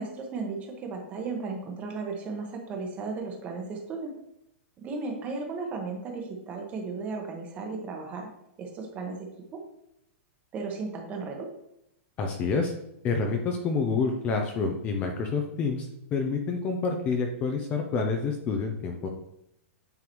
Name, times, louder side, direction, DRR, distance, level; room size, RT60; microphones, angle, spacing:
voice 1, 0.0-4.1 4.8-8.3 8.6-9.6 10.5-11.5, right 4 dB, 20° right, 2 dB, 1.0 m, -35 dB
voice 2, 12.2-12.7 13.0-19.1, left 4 dB, 20° left, 4 dB, 0.5 m, -28 dB
8.9 x 3.8 x 3.1 m, 0.79 s
hypercardioid pair, 165°, 8 cm